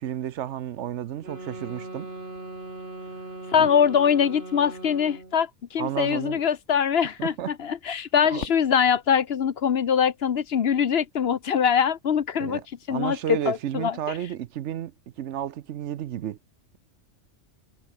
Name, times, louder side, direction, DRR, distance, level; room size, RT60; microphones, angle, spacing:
voice 1, 0.0-2.1 3.6-3.7 5.8-6.4 7.2-7.6 7.9-8.4 12.4-14.9 15.2-16.4, right 11 dB, 70° right, 1.0 m, -32 dB
sound 1, 1.2-5.4, right 2 dB, 55° right, 5.2 m, -39 dB
voice 2, 3.5-12.6 12.9-14.2, left 7 dB, 60° left, 1.0 m, -23 dB
Fireworks, 8.4-11.3, left 6 dB, 75° left, 1.7 m, -44 dB
omnidirectional pair, 1.3 m